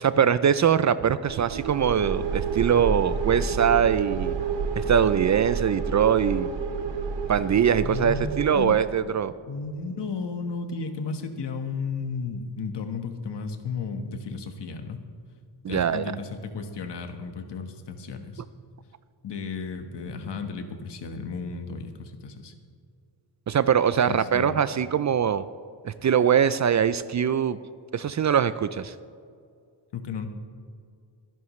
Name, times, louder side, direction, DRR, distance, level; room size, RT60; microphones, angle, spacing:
voice 1, 0.0-4.3 4.8-6.5 7.3-9.3 15.6-16.1 23.5-25.5 25.8-27.6 27.9-28.9, right 8 dB, 40° right, 14 dB, 0.4 m, -22 dB
sound 1, 1.3-9.0, right 5 dB, 70° right, 1.3 m, -30 dB
voice 2, 7.8-8.8 9.5-15.0 15.7-18.4 19.2-22.5 24.0-24.6 29.9-30.3, left 4 dB, 65° left, 6 dB, 1.5 m, -34 dB
25.0 x 11.0 x 3.2 m, 2.3 s
cardioid pair, 115°, 45 cm